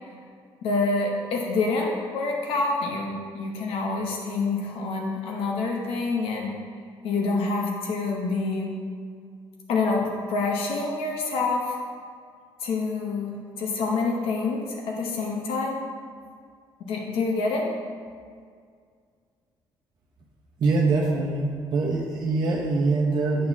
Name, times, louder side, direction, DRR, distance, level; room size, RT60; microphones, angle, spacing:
voice 1, 0.6-6.5 7.0-8.8 9.7-11.8 12.6-15.8 16.9-17.7, left 3 dB, 80° left, 0 dB, 0.9 m, -27 dB
voice 2, 20.6-23.5, right 3 dB, 50° right, -3 dB, 0.8 m, -24 dB
7.5 x 4.1 x 5.8 m, 2.1 s
cardioid pair, 115°, 9 cm